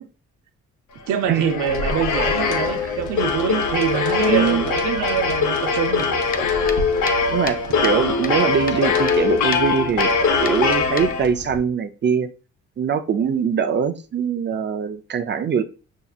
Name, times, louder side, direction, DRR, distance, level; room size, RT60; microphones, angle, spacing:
sound 1, 1.1-11.6, left 4 dB, 70° left, 0.9 m, -22 dB
voice 1, 1.1-6.1, right 8 dB, 80° right, 0.7 m, -25 dB
voice 2, 4.3-4.7 7.3-10.1 10.4-12.3 12.8-15.6, right 6 dB, 35° right, 0.5 m, -22 dB
sound 2, 6.0-9.2 9.5-9.7 10.0-10.1 10.5-11.5, left 6 dB, 30° left, 0.4 m, -33 dB
5.6 x 2.8 x 2.4 m
cardioid pair, 90°, 30 cm